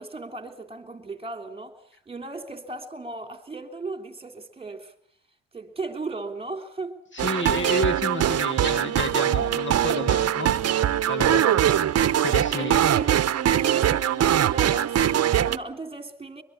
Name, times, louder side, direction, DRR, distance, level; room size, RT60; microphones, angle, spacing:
voice 1, 0.0-1.8 2.1-4.9 5.5-7.0 11.3-11.7 12.5-16.4, right 3 dB, 20° right, 3.3 m, -37 dB
voice 2, 7.1-11.4 12.2-12.8, left 2 dB, 40° left, 2.1 m, -30 dB
sound 1, 7.2-15.6, right 10 dB, 55° right, 1.0 m, -22 dB
24.0 x 22.0 x 8.7 m
cardioid pair, 90°, 30 cm